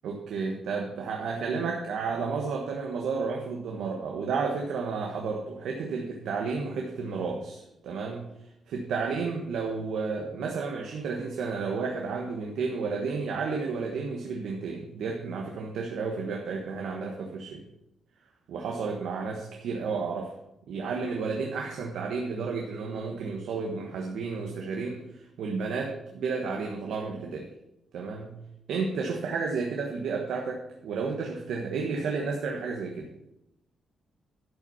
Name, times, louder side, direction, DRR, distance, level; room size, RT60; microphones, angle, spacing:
voice 1, 0.0-8.3 8.7-17.6 18.5-20.3 20.7-27.5 27.9-28.4 28.7-33.1, right 4 dB, 80° right, 1 dB, 1.3 m, -32 dB
11.5 x 5.8 x 5.6 m, 0.86 s
wide cardioid pair, 175°, 0 cm